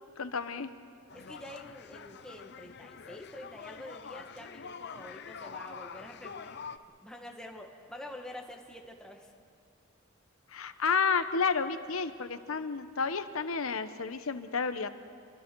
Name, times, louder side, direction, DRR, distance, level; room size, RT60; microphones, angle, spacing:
voice 1, 0.2-0.7 10.5-14.9, left 5 dB, 90° left, 10 dB, 1.0 m, -31 dB
sound 1, 1.1-6.8, left 6 dB, 55° left, 0.7 m, -46 dB
voice 2, 1.1-6.6 7.0-9.3, left 1 dB, 5° left, 1 dB, 1.8 m, -47 dB
29.0 x 23.5 x 4.7 m, 2.3 s
head